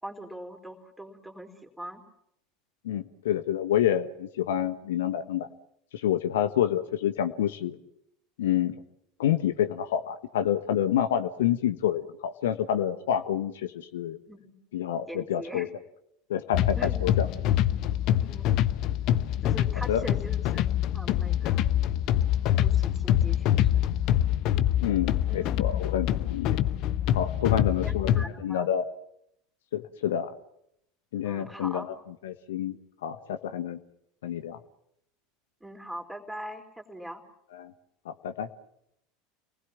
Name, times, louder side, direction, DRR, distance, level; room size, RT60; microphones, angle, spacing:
voice 1, 0.0-2.0 14.3-14.5 15.1-15.7 16.8-17.1 18.1-18.5 19.4-20.7 20.9-21.7 22.6-23.9 25.3-25.7 27.4-28.7 31.2-31.9 35.6-37.2, right 1 dB, 5° right, 4 dB, 4.1 m, -42 dB
voice 2, 2.8-5.5 5.9-7.8 8.4-8.7 9.2-14.2 14.7-15.7 16.3-17.3 19.9-20.1 24.8-26.6 27.1-28.1 28.4-28.9 29.7-30.3 31.1-31.8 32.2-33.8 34.2-34.6 37.6-37.7 38.0-38.5, left 10 dB, 70° left, 10 dB, 1.2 m, -28 dB
sound 1, 16.5-28.3, left 11 dB, 50° left, 1.0 m, -25 dB
29.0 x 20.0 x 7.3 m, 0.77 s
figure-of-eight pair, 75°, 0 cm